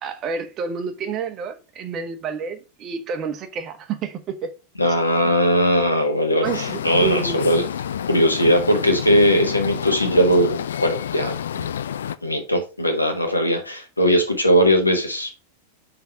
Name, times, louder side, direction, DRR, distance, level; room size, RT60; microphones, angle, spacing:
voice 1, 0.0-4.5 6.4-7.5, right 6 dB, 30° right, 1.0 m, -29 dB
voice 2, 4.8-7.6 8.1-11.3 12.2-15.3, equal, 85° left, 1.5 m, -19 dB
sound 1, 6.4-12.2, left 9 dB, 65° left, 0.4 m, -29 dB
5.7 x 3.8 x 4.5 m
figure-of-eight pair, 90°, 0 cm